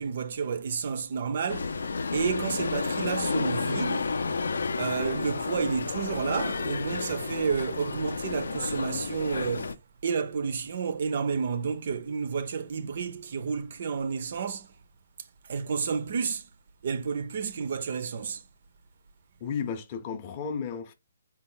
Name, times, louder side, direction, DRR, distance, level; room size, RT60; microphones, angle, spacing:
voice 1, 0.0-1.8 2.1-4.1 4.8-9.8 10.0-14.7 15.5-16.5 16.8-18.4, right 6 dB, 40° right, 0.4 m, -30 dB
sound 1, 1.5-9.7, left 4 dB, 85° left, 0.5 m, -31 dB
voice 2, 19.4-20.9, left 6 dB, 20° left, 0.5 m, -33 dB
4.1 x 2.2 x 3.8 m
hypercardioid pair, 175°, 0 cm